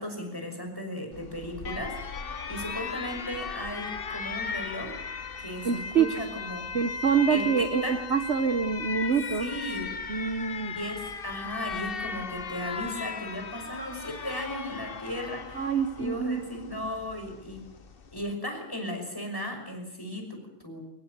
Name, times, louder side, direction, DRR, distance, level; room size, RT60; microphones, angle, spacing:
voice 1, 0.0-2.0 2.5-5.0 5.4-6.7 7.3-8.0 9.4-10.0 10.7-17.7 18.1-20.8, left 1 dB, 10° left, 3 dB, 5.9 m, -36 dB
Alarm, 1.1-18.3, left 5 dB, 35° left, 1.1 m, -37 dB
voice 2, 5.6-6.1 6.7-9.5 10.1-10.7 15.6-16.4, right 6 dB, 40° right, 10 dB, 1.2 m, -26 dB
23.5 x 22.0 x 8.2 m, 0.80 s
omnidirectional pair, 2.1 m